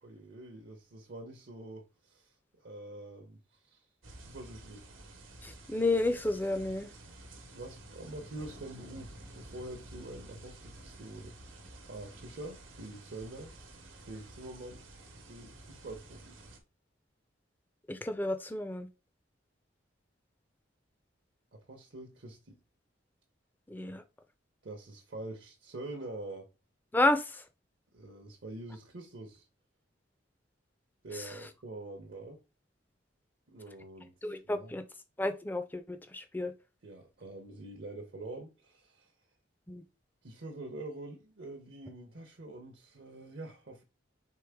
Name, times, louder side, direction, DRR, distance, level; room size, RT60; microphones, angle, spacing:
voice 1, 0.0-2.3 2.6-3.9 4.2-4.9 7.5-11.4 11.9-13.5 14.0-14.9 15.3-16.4 21.5-22.5 24.6-26.5 27.9-29.5 31.0-32.4 33.5-34.1 34.5-34.7 36.8-39.1 40.2-43.8, right 2 dB, 60° right, 0.8 m, -45 dB
sound 1, 4.0-16.6, right 1 dB, 90° right, 1.1 m, -51 dB
voice 2, 5.4-6.9 17.9-18.9 23.7-24.0 26.9-27.4 31.1-31.4 34.2-34.8 35.2-36.5 39.7-39.8, left 2 dB, 10° left, 0.4 m, -31 dB
4.6 x 3.3 x 3.5 m
head